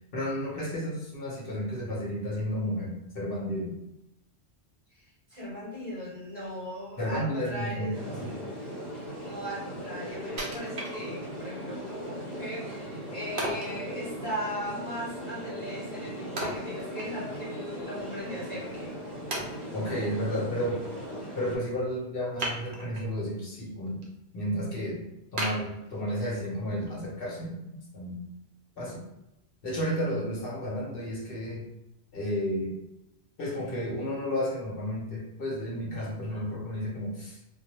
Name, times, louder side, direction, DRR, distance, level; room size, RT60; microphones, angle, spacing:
voice 1, 0.1-3.8 7.0-8.4 11.0-11.1 19.7-20.8 21.3-24.1 24.3-25.0 25.3-28.2 28.8-29.0 29.6-31.7 32.1-32.8 33.4-37.4, equal, 60° left, -4 dB, 0.9 m, -32 dB
voice 2, 5.3-8.0 9.2-19.0, equal, 30° right, -9 dB, 0.9 m, -38 dB
sound 1, 7.9-21.6, equal, 40° left, 0.9 m, -39 dB
Wood, 10.4-11.5 12.0-12.1 13.4-13.8 16.4-17.5 17.8-17.9 18.6-18.7 19.3-20.0 22.4-23.1 23.6-24.1 24.5-24.6 25.4-26.4 26.9-27.0, right 1 dB, 60° right, 0.7 m, -35 dB
2.2 x 2.2 x 2.9 m, 0.90 s
omnidirectional pair, 1.1 m